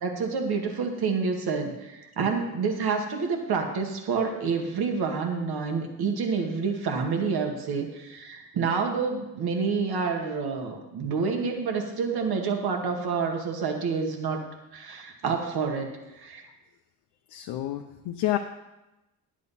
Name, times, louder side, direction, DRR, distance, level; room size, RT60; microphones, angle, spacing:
voice 1, 0.0-14.4 14.7-16.4, right 5 dB, 55° right, 3 dB, 2.1 m, -28 dB
voice 2, 17.3-18.4, left 15 dB, 65° left, 4 dB, 0.8 m, -29 dB
11.0 x 8.4 x 4.3 m, 0.99 s
hypercardioid pair, 60°, 44 cm